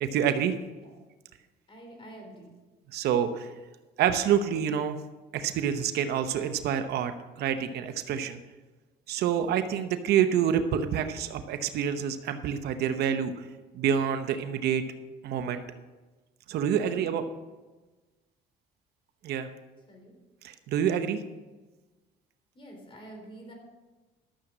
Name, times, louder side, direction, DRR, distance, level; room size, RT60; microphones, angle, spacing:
voice 1, 0.0-0.6 2.9-3.5 4.0-5.0 5.3-8.4 9.1-13.5 13.7-14.8 15.2-15.6 16.5-17.2 19.2-19.5 20.4-21.2, right 8 dB, 70° right, 9 dB, 0.9 m, -27 dB
voice 2, 1.7-2.5 19.9-20.1 22.5-23.5, right 1 dB, 30° left, 1 dB, 4.1 m, -47 dB
13.0 x 7.4 x 6.2 m, 1.2 s
cardioid pair, 110°, 17 cm